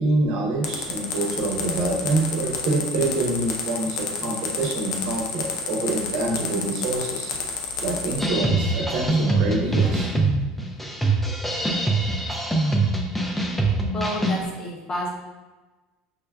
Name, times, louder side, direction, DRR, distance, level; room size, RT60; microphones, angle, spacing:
voice 1, 0.0-7.4 7.8-10.1, right 2 dB, 65° right, -1 dB, 0.9 m, -26 dB
sound 1, 0.6-8.2, left 6 dB, 80° left, 0.6 m, -29 dB
sound 2, 8.2-14.5, right 2 dB, 5° left, 0.5 m, -23 dB
voice 2, 13.9-15.1, left 1 dB, 30° left, -2 dB, 0.9 m, -29 dB
5.1 x 2.2 x 2.3 m, 1.2 s
supercardioid pair, 110°, 2 cm